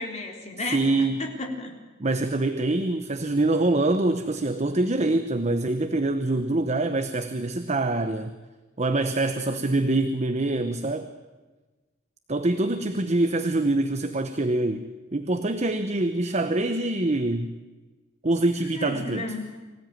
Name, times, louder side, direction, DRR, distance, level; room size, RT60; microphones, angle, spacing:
voice 1, 0.0-1.7 18.7-19.4, left 2 dB, 35° left, 1 dB, 4.0 m, -33 dB
voice 2, 0.7-1.2 2.0-8.3 8.8-11.1 12.3-14.8 15.1-17.5 18.2-19.3, right 2 dB, 35° right, 9 dB, 1.0 m, -25 dB
24.5 x 16.5 x 9.2 m, 1.2 s
head